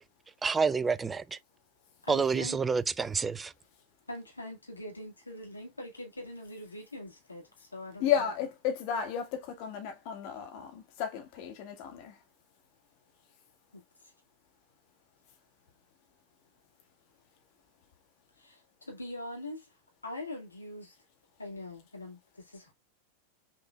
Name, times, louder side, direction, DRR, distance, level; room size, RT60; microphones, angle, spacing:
voice 1, 0.4-1.4 2.1-3.5, right 5 dB, 15° right, 0.3 m, -28 dB
voice 2, 2.0-2.6 4.1-8.2 10.1-10.2 13.7-13.8 18.4-19.7 20.0-21.0 21.4-22.7, left 1 dB, 80° left, 2.0 m, -43 dB
voice 3, 8.0-12.2, left 8 dB, 45° left, 1.8 m, -33 dB
6.1 x 3.7 x 2.3 m
figure-of-eight pair, 90°, 0 cm